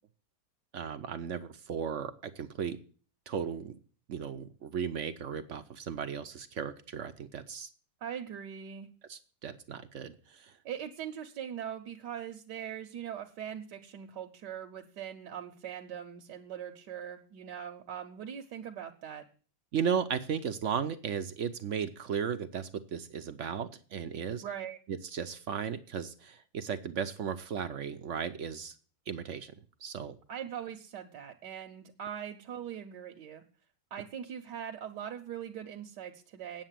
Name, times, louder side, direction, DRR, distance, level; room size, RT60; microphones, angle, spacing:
voice 1, 0.7-2.8 3.3-3.8 4.1-7.7 9.1-10.6 19.7-24.4 24.9-28.7 29.1-29.5 29.8-30.2, right 7 dB, 60° right, 9 dB, 0.8 m, -35 dB
voice 2, 8.0-8.9 10.6-19.2 24.4-24.8 30.3-33.4 33.9-36.6, right 9 dB, 75° right, 3 dB, 1.5 m, -41 dB
9.0 x 7.3 x 7.4 m, 0.41 s
omnidirectional pair, 1.9 m